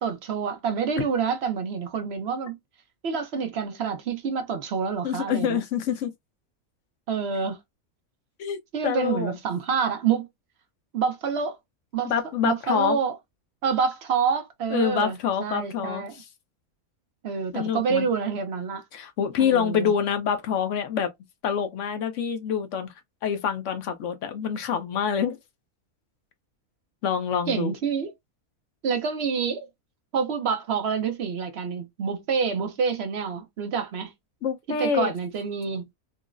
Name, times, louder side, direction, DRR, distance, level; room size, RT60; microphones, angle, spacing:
voice 1, 0.0-2.6 3.0-5.6 7.1-7.6 8.7-10.3 10.9-11.6 11.9-12.1 12.4-13.2 13.6-16.2 17.2-18.8 19.4-19.9 27.5-28.1 28.8-29.7 30.1-34.1 34.8-35.9, right 6 dB, 60° right, 0.8 m, -27 dB
voice 2, 5.0-6.1 8.4-8.6 8.8-9.4 12.0-13.0 14.7-16.0 17.5-18.1 18.9-21.1 21.4-22.9 23.2-25.4 27.0-27.7 34.4-35.1, left 7 dB, 65° left, 1.0 m, -26 dB
3.8 x 2.0 x 2.4 m
omnidirectional pair, 1.5 m